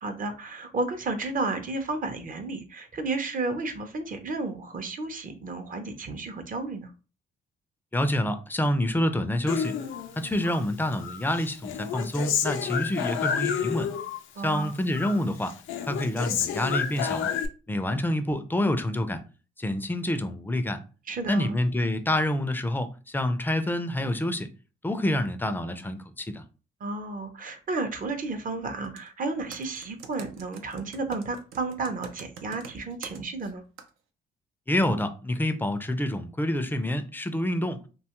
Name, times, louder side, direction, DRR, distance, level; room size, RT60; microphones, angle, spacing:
voice 1, 0.0-6.9 14.4-14.7 21.1-21.6 26.8-33.6, right 3 dB, 45° right, 0.6 m, -32 dB
voice 2, 7.9-9.8 10.2-13.9 14.4-15.5 15.9-17.3 17.7-19.2 19.6-20.8 21.3-24.5 24.8-26.4 34.7-37.8, left 1 dB, 10° left, 0.4 m, -27 dB
Human voice, 9.5-10.6 11.0-14.2 14.5-15.2 15.5-17.5, left 8 dB, 80° left, 0.5 m, -30 dB
Computer keyboard, 28.8-29.1 29.5-33.5 33.8-33.9, right 7 dB, 90° right, 0.5 m, -43 dB
2.7 x 2.3 x 2.9 m
cardioid pair, 90°, 20 cm